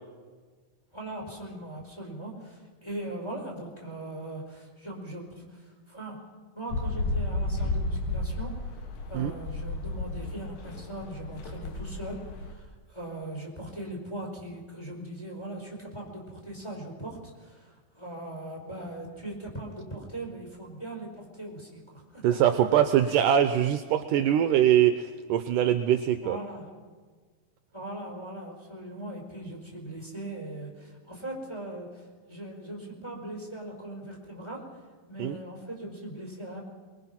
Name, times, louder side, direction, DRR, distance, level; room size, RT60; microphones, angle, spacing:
voice 1, 0.9-6.2 6.5-8.5 9.1-22.2 26.2-26.7 27.7-34.6 35.1-36.6, right 1 dB, 5° left, -1 dB, 4.6 m, -40 dB
sound 1, 6.7-12.5, left 2 dB, 70° left, 3.3 m, -33 dB
voice 2, 22.2-26.4 35.2-35.4, right 10 dB, 75° right, 8 dB, 2.2 m, -23 dB
24.0 x 22.0 x 5.9 m, 1.5 s
omnidirectional pair, 4.1 m